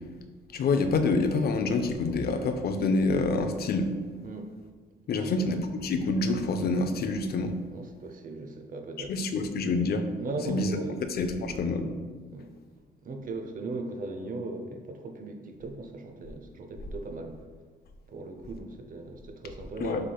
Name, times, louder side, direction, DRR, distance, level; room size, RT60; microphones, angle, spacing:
voice 1, 0.5-3.9 5.1-7.5 9.1-10.1 10.5-10.8 11.1-11.9 19.8-20.0, left 3 dB, 50° left, 7 dB, 0.5 m, -27 dB
voice 2, 5.0-5.5 7.7-9.3 10.2-11.0 11.3-11.4 12.3-12.5 13.0-17.3 18.1-20.0, right 3 dB, 45° right, 5 dB, 0.6 m, -38 dB
6.4 x 3.3 x 2.3 m, 1.5 s
cardioid pair, 90°, 20 cm